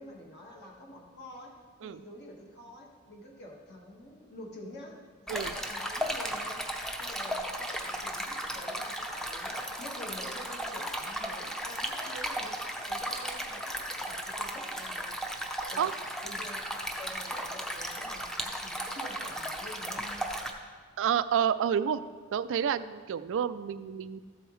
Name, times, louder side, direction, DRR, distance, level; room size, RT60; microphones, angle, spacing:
voice 1, 0.0-1.5 1.8-5.0 5.3-6.6 7.0-12.5 12.9-15.2 15.7-15.9 16.2-16.6 17.0-20.3, left 1 dB, 50° left, -1 dB, 1.6 m, -47 dB
Stream, 5.3-20.5, equal, ahead, 0.7 m, -35 dB
voice 2, 21.0-22.0 22.3-24.2, right 8 dB, 60° right, 14 dB, 0.3 m, -29 dB
13.5 x 7.8 x 3.1 m, 1.5 s
head